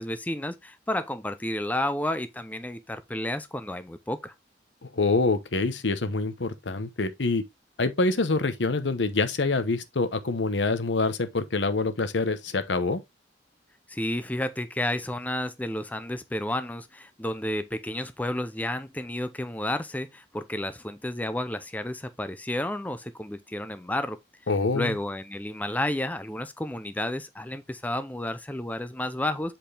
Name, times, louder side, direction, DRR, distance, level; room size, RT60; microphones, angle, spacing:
voice 1, 0.0-4.3 13.9-24.2 24.7-29.6, left 1 dB, 10° left, 0.5 m, -31 dB
voice 2, 4.8-7.4 7.8-13.0 24.5-24.9, left 3 dB, 85° left, 1.0 m, -26 dB
7.9 x 4.4 x 3.3 m
head